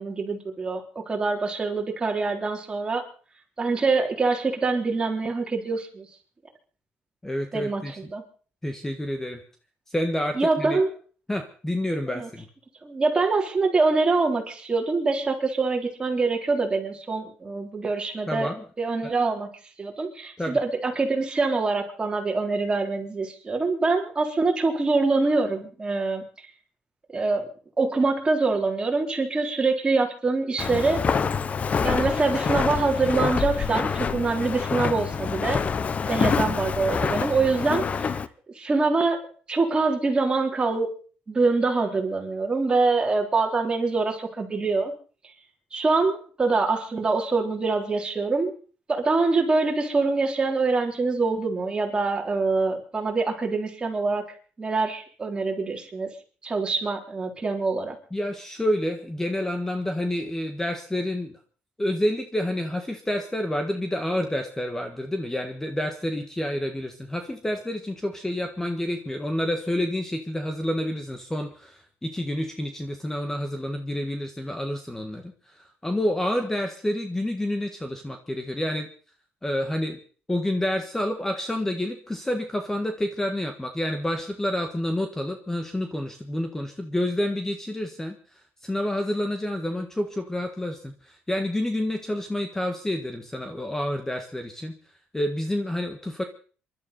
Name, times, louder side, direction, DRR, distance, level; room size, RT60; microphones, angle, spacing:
voice 1, 0.0-3.0 3.6-6.1 7.5-7.8 8.1-8.2 10.4-10.9 12.1-12.3 12.8-18.5 18.8-19.5 19.8-26.2 27.1-27.5 27.8-31.0 31.8-35.6 36.1-38.2 38.6-40.9 41.3-44.9 45.7-48.5 48.9-54.3 54.6-56.1 56.4-58.0, right 3 dB, 25° right, 1 dB, 3.8 m, -24 dB
voice 2, 7.2-8.1 8.6-9.4 9.9-10.8 11.3-12.5 18.3-18.6 19.0-19.1 20.4-20.6 58.1-61.4 61.8-78.9 79.4-80.0 80.3-94.8 95.1-96.2, left 1 dB, 10° left, 6 dB, 1.6 m, -29 dB
Walk footsteps, 30.6-38.3, left 6 dB, 40° left, 0.8 m, -26 dB
27.0 x 12.0 x 4.3 m, 0.41 s
cardioid pair, 115°, 4 cm